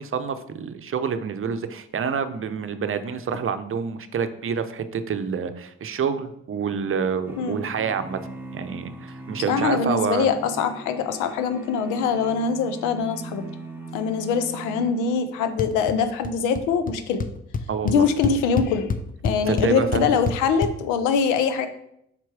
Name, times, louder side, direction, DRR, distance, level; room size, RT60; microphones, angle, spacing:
voice 1, 0.0-8.2 8.5-10.3 17.7-18.1 19.5-20.1, right 6 dB, 45° right, 10 dB, 0.7 m, -27 dB
sound 1, 7.3-15.6, right 1 dB, 5° right, 1.1 m, -39 dB
voice 2, 9.5-13.4 13.9-17.2 17.8-18.9 19.2-21.7, left 6 dB, 90° left, 10 dB, 0.6 m, -23 dB
sound 2, 15.6-16.0 16.2-16.6 16.9-17.0 17.2-20.7, left 5 dB, 30° left, 0.6 m, -27 dB
5.9 x 4.5 x 4.8 m, 0.75 s
supercardioid pair, 60°, 30 cm